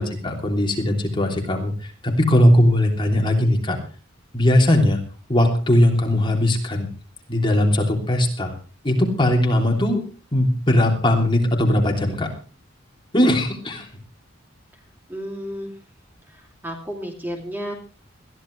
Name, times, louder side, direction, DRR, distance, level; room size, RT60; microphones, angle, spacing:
voice 1, 0.0-3.8 4.3-5.0 5.3-6.9 7.3-8.5 8.8-10.0 10.3-12.3 13.1-13.9, left 1 dB, 25° left, 1 dB, 3.1 m, -19 dB
voice 2, 15.1-15.7 16.6-17.7, equal, 10° right, 2 dB, 2.8 m, -32 dB
21.5 x 14.0 x 3.3 m, 0.35 s
head